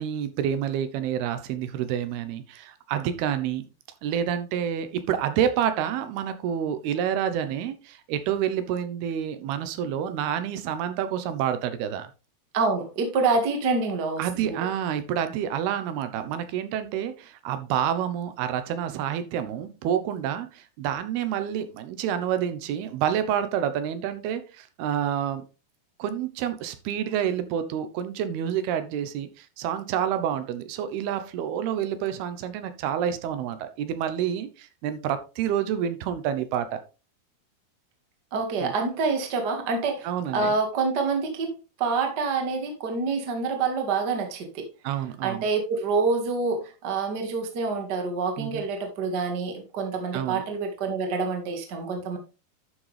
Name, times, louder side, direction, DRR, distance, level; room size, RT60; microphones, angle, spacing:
voice 1, 0.0-3.6 4.0-12.1 14.2-25.5 26.0-36.8 38.6-38.7 40.0-40.6 44.8-45.5 48.4-48.6 50.1-50.4, right 9 dB, 85° right, 11 dB, 2.9 m, -28 dB
voice 2, 12.5-14.6 38.3-44.7 45.2-52.2, right 4 dB, 40° right, 4 dB, 1.7 m, -27 dB
11.5 x 6.3 x 3.3 m, 0.31 s
omnidirectional pair, 4.4 m